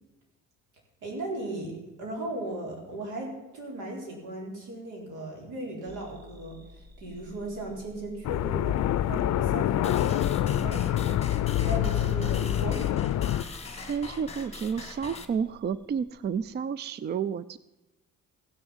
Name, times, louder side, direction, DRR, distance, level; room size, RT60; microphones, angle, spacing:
voice 1, 1.0-12.9 13.3-13.5, right 1 dB, 85° right, -1 dB, 4.0 m, -37 dB
sound 1, 5.9-16.5, equal, 15° right, 1.5 m, -51 dB
sound 2, 8.2-13.4, left 12 dB, 60° left, 0.5 m, -26 dB
sound 3, 9.8-15.3, left 4 dB, 20° left, 1.3 m, -42 dB
voice 2, 13.8-17.6, right 7 dB, 35° right, 17 dB, 0.4 m, -31 dB
15.5 x 6.9 x 7.2 m, 0.97 s
cardioid pair, 90°, 30 cm